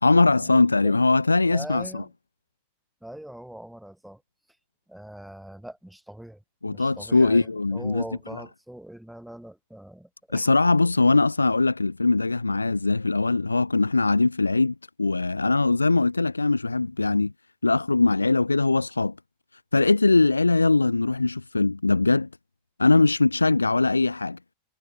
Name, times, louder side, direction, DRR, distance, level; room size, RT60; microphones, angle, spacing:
voice 1, 0.0-2.0 6.6-8.0 10.3-17.3 17.6-19.1 19.7-22.3 22.8-24.4, left 3 dB, 80° left, 0.9 m, -21 dB
voice 2, 1.5-2.1 3.0-4.2 4.9-10.5, right 1 dB, ahead, 7.9 m, -42 dB
figure-of-eight pair, 90°, 0 cm